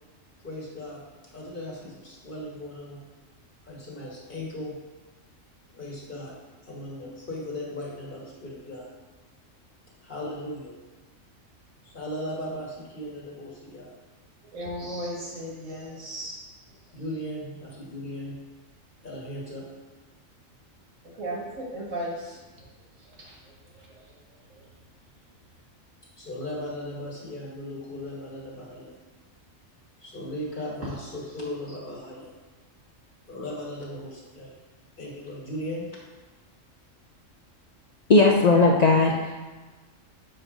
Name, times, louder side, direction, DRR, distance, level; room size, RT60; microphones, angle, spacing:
voice 1, 0.4-1.0 1.3-3.0 3.6-4.8 5.7-6.3 6.6-8.9 10.0-10.7 11.8-13.9 16.9-18.4 19.0-19.7 26.2-28.9 30.0-32.3 33.3-34.5 35.0-35.9 38.2-38.3, left 1 dB, 40° left, -4 dB, 1.7 m, -37 dB
voice 2, 14.4-16.5 21.1-22.7 23.0-24.1 24.5-24.7, right 1 dB, 75° right, -3 dB, 1.8 m, -37 dB
voice 3, 38.1-39.4, left 3 dB, 70° left, 0 dB, 0.4 m, -18 dB
7.2 x 3.3 x 4.9 m, 1.3 s
omnidirectional pair, 1.3 m